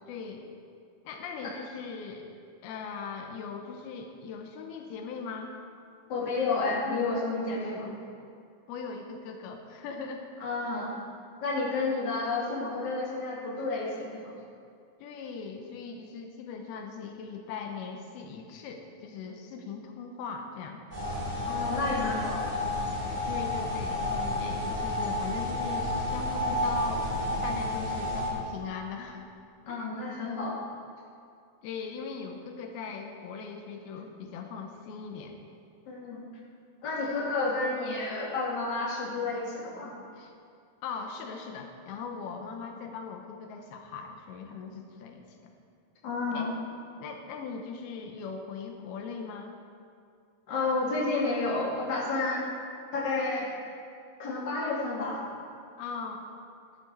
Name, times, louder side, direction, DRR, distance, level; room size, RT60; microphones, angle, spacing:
voice 1, 0.1-0.5 1.0-2.3 2.6-5.5 8.7-10.2 15.0-20.8 21.8-22.0 23.2-27.1 27.4-29.2 29.7-29.9 31.6-35.4 37.0-37.1 40.2-40.3 40.8-45.5 46.3-46.6 47.0-49.5 55.8-56.2, left 5 dB, 85° left, 4 dB, 2.7 m, -39 dB
voice 2, 6.1-7.9 10.4-11.0 11.4-14.3 21.5-22.5 29.6-30.6 35.9-36.2 36.8-39.9 46.0-46.5 50.5-52.4 52.9-53.5 54.2-55.2, left 3 dB, 30° left, -5 dB, 2.5 m, -30 dB
sound 1, 20.9-28.3, left 1 dB, 10° right, 2.9 m, -31 dB
13.5 x 11.5 x 4.5 m, 2.4 s
omnidirectional pair, 4.5 m